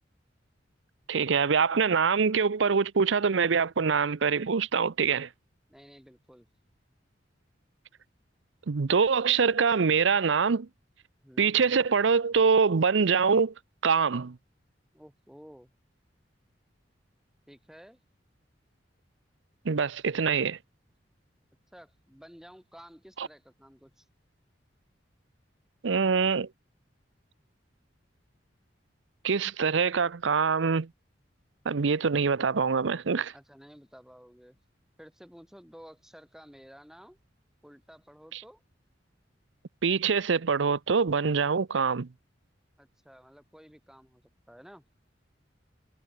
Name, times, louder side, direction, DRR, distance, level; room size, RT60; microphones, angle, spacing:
voice 1, 1.1-5.3 8.7-10.7 11.4-13.5 13.8-14.4 19.6-20.6 23.2-23.3 25.8-26.5 29.2-30.9 31.7-33.3 38.3-38.4 39.8-42.1, right 5 dB, 85° right, 0.6 m, -24 dB
voice 2, 5.7-6.5 11.2-11.9 14.9-15.7 17.5-18.0 21.7-24.1 33.3-34.6 35.0-37.2 37.6-38.6 42.8-44.8, equal, 5° right, 3.8 m, -52 dB
head